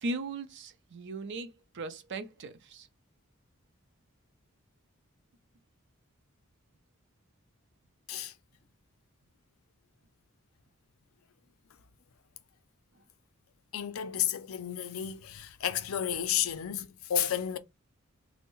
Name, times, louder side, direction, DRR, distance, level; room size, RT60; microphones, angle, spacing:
voice 1, 0.0-2.9, right 2 dB, 60° right, 0.5 m, -38 dB
voice 2, 13.7-17.6, left 9 dB, 75° left, 0.4 m, -32 dB
3.5 x 2.1 x 2.9 m
head